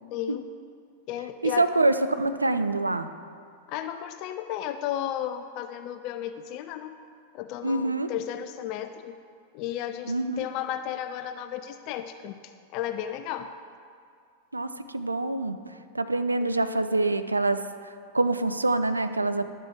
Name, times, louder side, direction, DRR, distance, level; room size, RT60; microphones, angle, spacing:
voice 1, 0.1-0.5 1.1-1.7 3.7-6.9 7.3-9.2 9.5-13.5 16.4-16.9, left 11 dB, 40° left, 9 dB, 0.4 m, -34 dB
voice 2, 1.4-3.1 7.6-8.1 10.1-10.5 14.5-15.6 15.9-19.5, right 2 dB, 80° right, 10 dB, 0.4 m, -26 dB
11.5 x 7.4 x 3.4 m, 2.3 s
figure-of-eight pair, 90°, 0 cm